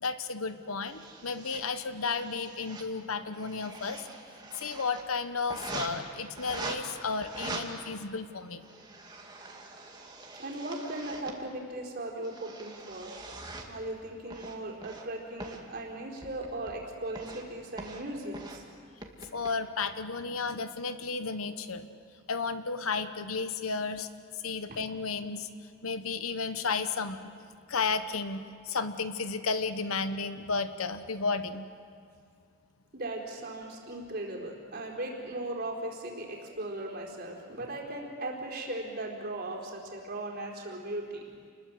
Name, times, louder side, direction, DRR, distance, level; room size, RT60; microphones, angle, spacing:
voice 1, 0.0-4.1 4.5-8.7 19.3-21.9 22.3-25.5 25.8-27.3 27.7-31.7, left 4 dB, 85° left, 10 dB, 1.1 m, -33 dB
sound 1, 0.8-1.6 2.0-2.8 3.2-5.0 5.5-5.9 6.4-6.8 7.2-7.6 8.4-11.4 12.0-13.7 14.3-15.0 15.4-15.6 16.2-16.8 17.1-17.5 17.8-18.0 18.3-18.6 19.0-19.5, right 3 dB, 20° right, 2.2 m, -43 dB
voice 2, 10.4-13.2 13.7-18.6 24.7-24.8 32.9-41.2, right 1 dB, 50° right, -1 dB, 4.2 m, -38 dB
28.5 x 21.0 x 7.8 m, 2.3 s
head